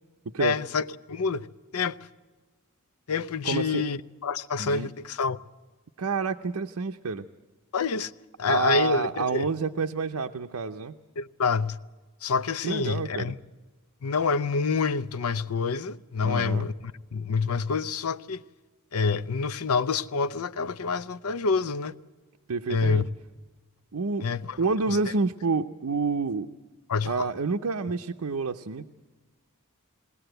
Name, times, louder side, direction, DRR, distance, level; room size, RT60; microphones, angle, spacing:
voice 1, 0.4-1.5 1.7-2.0 3.1-5.4 7.7-8.1 8.4-9.5 11.2-11.8 12.2-13.3 14.0-18.4 18.9-21.9 22.7-23.1 24.2-24.6 24.9-25.1 26.9-27.3, left 5 dB, 80° left, 0.6 m, -27 dB
voice 2, 3.4-3.8 4.6-4.9 6.0-7.3 8.5-10.9 12.6-13.3 16.2-16.7 22.5-23.1 23.9-24.3 24.6-26.5 27.1-28.9, right 4 dB, 80° right, 0.7 m, -28 dB
20.5 x 18.5 x 7.9 m
head